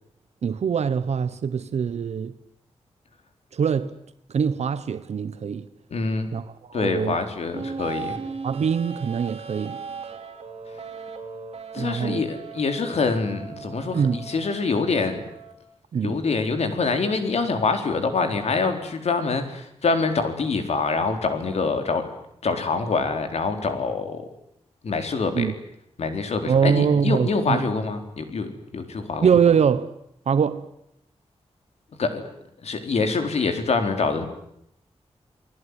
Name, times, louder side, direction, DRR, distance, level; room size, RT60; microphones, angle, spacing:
voice 1, 0.4-2.3 3.5-3.9 4.3-5.6 6.3-7.2 8.4-9.8 11.7-12.2 13.9-14.2 15.9-16.2 25.3-25.5 26.5-27.6 29.2-29.9 30.3-30.7, right 7 dB, 85° right, 1.2 m, -23 dB
voice 2, 5.9-6.3 6.7-8.2 11.7-15.2 16.0-22.1 22.4-24.3 24.8-25.5 26.0-29.3 32.0-32.2 32.6-34.3, left 4 dB, 75° left, 4.2 m, -25 dB
sound 1, 7.5-15.5, right 5 dB, 65° right, 4.7 m, -38 dB
29.0 x 19.5 x 9.8 m
wide cardioid pair, 160°, 11 cm